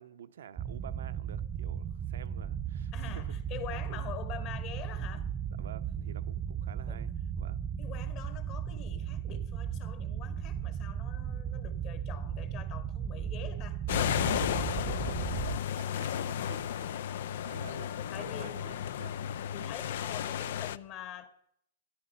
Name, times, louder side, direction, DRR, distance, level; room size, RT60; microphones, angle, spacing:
voice 1, 0.0-3.3 3.7-4.0 5.6-7.6 14.2-15.5 15.7-17.0 17.3-19.2, right 9 dB, 65° right, 0.8 m, -50 dB
sound 1, 0.6-15.6, right 8 dB, 25° right, 0.6 m, -36 dB
voice 2, 2.9-5.3 6.9-7.0 7.8-14.2 18.1-18.6 19.5-21.3, left 10 dB, 40° left, 1.7 m, -45 dB
sound 2, 13.9-20.8, left 10 dB, 60° left, 0.5 m, -33 dB
13.5 x 11.0 x 5.4 m
hypercardioid pair, 115°, 0 cm